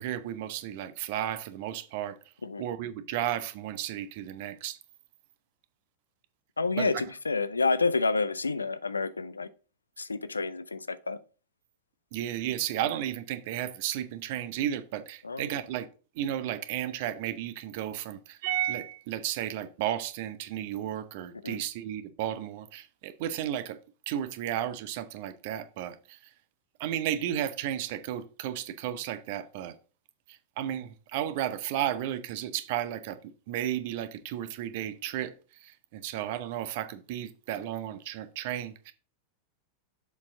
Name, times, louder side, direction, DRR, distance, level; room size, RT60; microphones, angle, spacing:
voice 1, 0.0-2.2 2.6-4.8 6.8-6.9 12.1-15.9 16.2-23.8 24.1-26.2 26.8-29.7 30.3-33.2 33.5-35.3 35.6-38.9, right 11 dB, 50° right, 0.7 m, -33 dB
voice 2, 6.6-9.5 10.0-11.2 15.2-15.5 21.4-21.6, left 3 dB, 80° left, 0.4 m, -29 dB
7.1 x 4.4 x 3.8 m
figure-of-eight pair, 90°, 0 cm